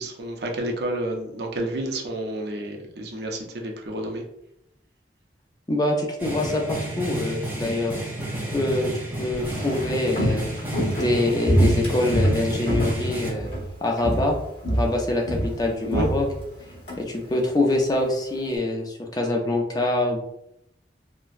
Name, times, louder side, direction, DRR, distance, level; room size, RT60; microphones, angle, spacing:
voice 1, 0.0-4.2 15.9-16.1, right 1 dB, 65° right, 1 dB, 0.6 m, -30 dB
voice 2, 5.7-7.9 8.5-8.9 9.2-10.5 11.0-13.5 13.8-14.4 14.7-16.3 17.0-20.2, left 2 dB, 20° left, 0 dB, 0.4 m, -25 dB
sound 1, 6.2-13.3, right 1 dB, 10° right, 0.9 m, -31 dB
Walk footsteps, 9.4-13.7 14.0-14.4 14.6-17.0 17.3-17.4, right 1 dB, 60° left, 1.4 m, -25 dB
3.8 x 2.1 x 2.5 m, 0.80 s
head